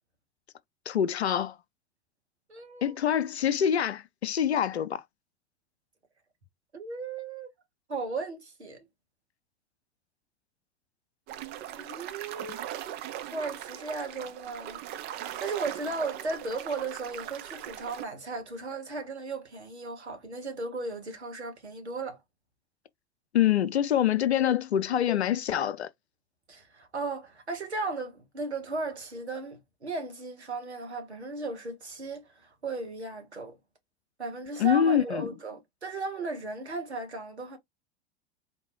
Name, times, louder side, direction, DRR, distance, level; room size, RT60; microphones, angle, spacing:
voice 1, 0.9-1.6 2.8-5.0 23.3-25.9 34.6-35.3, left 10 dB, 75° left, 0.5 m, -25 dB
voice 2, 2.5-3.0 6.7-7.5 7.9-8.9 11.8-12.6 13.3-14.9 15.2-22.2 26.5-33.6 34.2-37.6, right 3 dB, 80° right, 1.4 m, -36 dB
sound 1, 11.3-18.1, right 11 dB, 30° right, 0.6 m, -40 dB
4.4 x 2.7 x 3.0 m
figure-of-eight pair, 85°, 33 cm